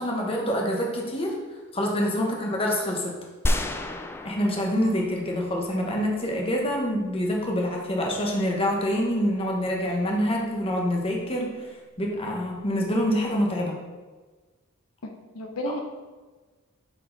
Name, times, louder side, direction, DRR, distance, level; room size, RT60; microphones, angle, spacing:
voice 1, 0.0-1.4 1.7-3.2 4.2-11.7 12.0-13.8 15.7-15.8, equal, 25° left, -1 dB, 1.0 m, -26 dB
sound 1, 3.5-5.8, left 1 dB, 10° left, 0.3 m, -30 dB
voice 2, 15.0-15.8, left 1 dB, 85° left, 4 dB, 0.7 m, -33 dB
6.3 x 4.6 x 3.9 m, 1.3 s
head